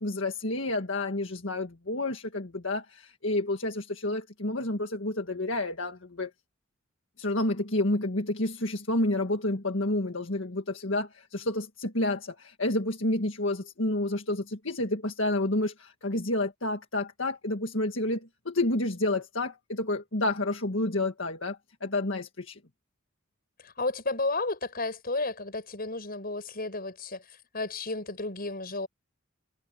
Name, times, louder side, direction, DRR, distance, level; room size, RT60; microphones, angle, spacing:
voice 1, 0.0-6.3 7.2-22.6, left 2 dB, 65° left, 1.9 m, -29 dB
voice 2, 23.6-28.9, left 2 dB, 45° left, 6.5 m, -32 dB
head